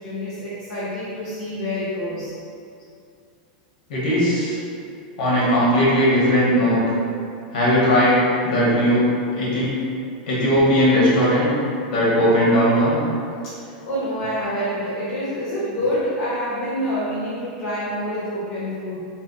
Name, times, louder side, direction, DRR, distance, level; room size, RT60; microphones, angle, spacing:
voice 1, 0.0-2.3 13.4-19.0, equal, 45° left, -9 dB, 0.6 m, -27 dB
voice 2, 3.9-4.6 5.2-6.8 7.5-9.1 9.4-9.7 10.3-11.5 11.9-13.0, equal, 75° left, -7 dB, 0.9 m, -18 dB
2.6 x 2.1 x 2.3 m, 2.4 s
supercardioid pair, 170°, 5 cm